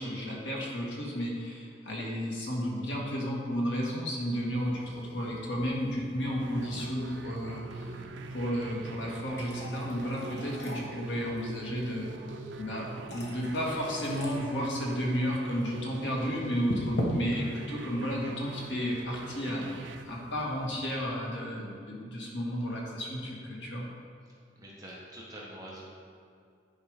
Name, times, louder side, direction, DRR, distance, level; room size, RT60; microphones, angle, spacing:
voice 1, 0.0-8.0 8.3-12.1 12.6-12.9 13.1-23.8, equal, 85° left, -3 dB, 1.7 m, -33 dB
sound 1, 4.6-20.9, equal, 65° left, 1.2 m, -42 dB
sound 2, 6.4-20.0, right 3 dB, 85° right, 0.5 m, -43 dB
voice 2, 24.2-25.8, right 1 dB, 20° right, -5 dB, 1.3 m, -46 dB
9.7 x 4.7 x 5.1 m, 2.3 s
head